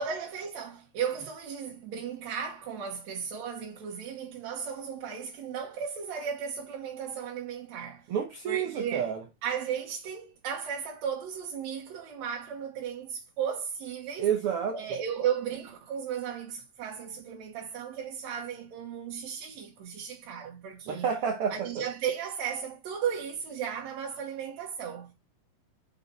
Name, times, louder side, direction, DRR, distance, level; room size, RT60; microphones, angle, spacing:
voice 1, 0.0-8.1 8.5-9.1 9.4-14.3 14.7-21.1 21.5-25.1, right 7 dB, 65° right, 2.2 m, -35 dB
voice 2, 8.1-9.2 14.2-14.8 20.9-21.8, right 8 dB, 85° right, 1.2 m, -29 dB
5.6 x 5.6 x 5.5 m
omnidirectional pair, 3.9 m